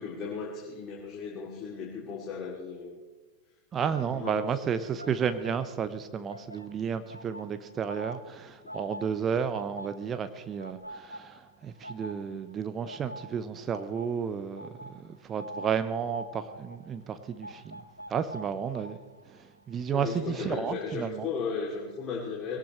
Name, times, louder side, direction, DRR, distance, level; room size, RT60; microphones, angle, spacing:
voice 1, 0.0-3.0 3.8-4.5 5.0-5.2 19.9-22.6, left 5 dB, 30° left, -4 dB, 2.7 m, -36 dB
voice 2, 3.7-14.7 15.0-17.8 18.1-19.0 19.7-21.3, right 7 dB, 25° right, 11 dB, 0.8 m, -32 dB
sound 1, 3.9-6.0 6.2-21.1 21.4-21.7, equal, 90° left, 0.8 m, -46 dB
21.5 x 17.5 x 3.1 m, 1.2 s
figure-of-eight pair, 90°, 0 cm